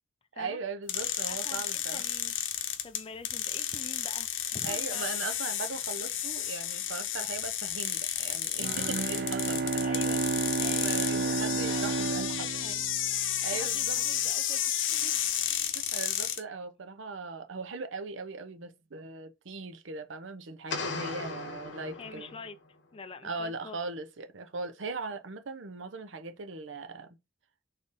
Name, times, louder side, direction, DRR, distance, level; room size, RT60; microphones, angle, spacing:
voice 1, 0.4-2.0 4.6-9.7 10.6-12.5 13.4-14.0 15.7-22.3 23.2-27.2, right 4 dB, 80° right, 0.7 m, -39 dB
sound 1, 0.9-16.4, left 10 dB, 85° left, 0.7 m, -32 dB
voice 2, 1.3-2.4 2.8-5.2 9.7-10.2 10.6-12.0 12.4-12.8 13.5-15.1 22.0-22.6 22.9-23.8, left 4 dB, 30° left, 0.4 m, -46 dB
Bowed string instrument, 8.6-13.5, right 4 dB, 50° right, 0.4 m, -31 dB
sound 2, 20.7-22.6, left 3 dB, 65° left, 0.9 m, -37 dB
4.3 x 3.5 x 3.4 m
head